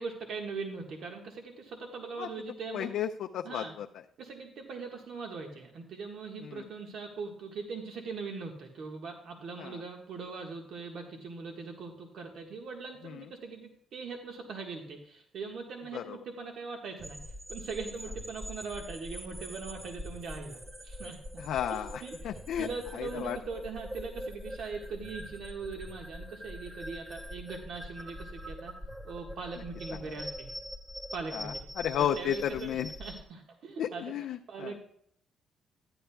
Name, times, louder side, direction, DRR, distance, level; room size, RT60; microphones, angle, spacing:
voice 1, 0.0-2.9 3.4-3.7 4.2-21.4 21.7-22.3 22.6-28.8 29.0-30.5 31.1-31.5 32.0-34.1 34.5-34.8, right 4 dB, 70° right, 2 dB, 1.4 m, -41 dB
voice 2, 2.7-3.9 6.4-6.6 9.6-9.7 15.9-16.0 21.4-22.7 23.0-23.4 31.3-32.9 33.8-34.7, left 10 dB, 80° left, 3 dB, 0.5 m, -33 dB
sound 1, 17.0-33.2, equal, 20° right, 1.7 m, -43 dB
13.5 x 10.0 x 2.3 m, 0.66 s
cardioid pair, 90°, 0 cm